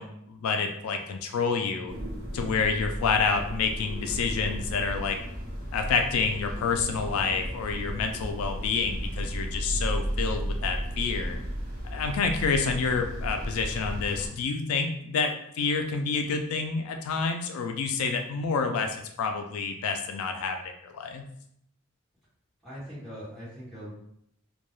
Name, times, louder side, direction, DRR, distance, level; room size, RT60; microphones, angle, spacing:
voice 1, 0.0-1.9 2.3-5.2 5.7-11.4 11.9-21.2, left 5 dB, 85° left, 5 dB, 0.3 m, -28 dB
sound 1, 1.9-14.3, equal, 35° right, 0.7 m, -34 dB
voice 2, 22.6-23.9, equal, ahead, -11 dB, 1.3 m, -41 dB
2.2 x 2.2 x 3.0 m, 0.72 s
head